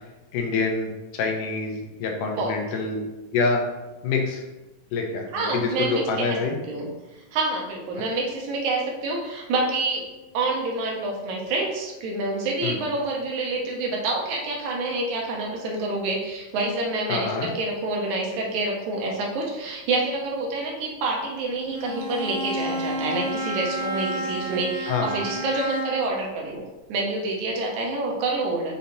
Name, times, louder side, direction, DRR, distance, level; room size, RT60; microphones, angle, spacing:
voice 1, 0.3-3.0 3.3-3.6 4.0-4.4 4.9-6.6 12.6-12.8 17.1-17.5 24.9-25.1, left 4 dB, 75° left, 2 dB, 2.4 m, -26 dB
voice 2, 5.3-6.4 6.7-6.9 7.3-10.0 10.3-26.6 26.9-28.8, right 2 dB, 70° right, -1 dB, 2.3 m, -27 dB
Bowed string instrument, 21.7-26.2, right 1 dB, 35° right, 1.8 m, -31 dB
6.6 x 5.5 x 2.8 m, 1.1 s
omnidirectional pair, 3.8 m